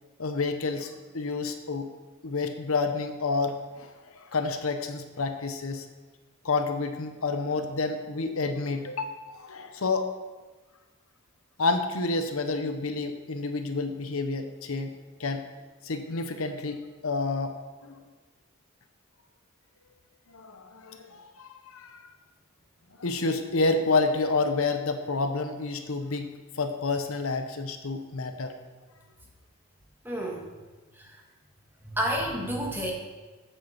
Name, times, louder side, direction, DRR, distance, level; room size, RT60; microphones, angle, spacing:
voice 1, 0.2-1.9 2.2-5.8 6.4-10.1 11.6-14.9 15.2-15.4 15.8-17.5 17.8-18.0 20.3-22.0 23.0-26.3 26.6-28.5, left 3 dB, 70° left, 7 dB, 0.8 m, -29 dB
voice 2, 30.0-30.5 31.0-31.1 31.9-32.9, equal, 10° right, -1 dB, 1.7 m, -30 dB
7.9 x 6.7 x 7.2 m, 1.3 s
head